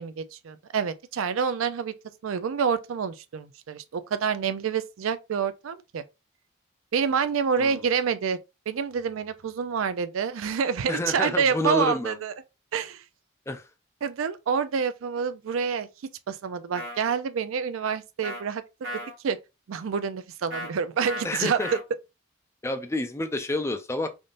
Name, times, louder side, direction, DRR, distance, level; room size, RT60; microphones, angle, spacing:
voice 1, 0.0-1.9 2.2-6.0 6.9-8.4 8.7-12.3 12.7-13.0 14.0-15.9 16.3-18.9 19.2-19.4 19.7-21.6, right 6 dB, 80° right, 0.4 m, -27 dB
voice 2, 10.9-12.1 13.5-13.7 21.2-21.7 22.6-24.1, left 2 dB, 15° left, 0.3 m, -29 dB
sound 1, 16.7-17.0 18.2-18.4 18.8-19.1 20.5-20.7 21.1-21.3 21.6-21.8, equal, 65° right, 1.0 m, -34 dB
3.5 x 2.5 x 2.5 m
head